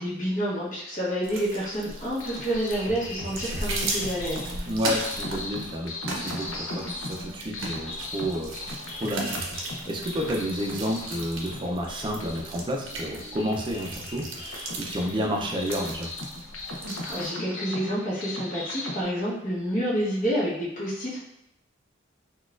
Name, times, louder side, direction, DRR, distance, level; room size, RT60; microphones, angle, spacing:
voice 1, 0.0-4.5 17.1-21.2, equal, 40° left, -8 dB, 1.0 m, -28 dB
sound 1, 1.2-17.3, right 2 dB, 70° right, 0.6 m, -37 dB
sound 2, 1.8-19.0, left 2 dB, 75° left, 0.6 m, -38 dB
voice 2, 4.6-9.3 9.6-16.1, equal, 25° right, 0 dB, 0.4 m, -31 dB
4.0 x 2.3 x 2.4 m, 0.79 s
head